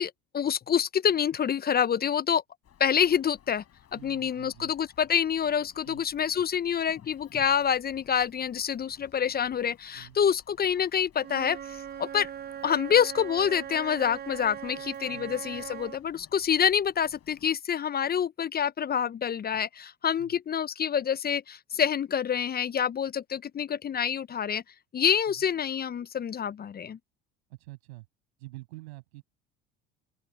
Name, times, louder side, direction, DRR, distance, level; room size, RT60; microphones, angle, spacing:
voice 1, 0.0-2.4 2.8-3.6 3.9-12.3 12.6-24.6 24.9-27.0, left 8 dB, 30° left, 0.6 m, -27 dB
Human voice, 2.6-17.5, left 10 dB, 45° left, 6.5 m, -58 dB
voice 2, 3.9-4.7 5.8-6.0 9.9-10.2 15.1-15.3 20.2-20.3 25.2-25.5 27.5-28.1 28.4-29.2, right 21 dB, 80° right, 7.2 m, -47 dB
Wind instrument woodwind instrument, 11.2-16.0, right 9 dB, 30° right, 0.7 m, -40 dB
open air
hypercardioid pair, 70°, 33 cm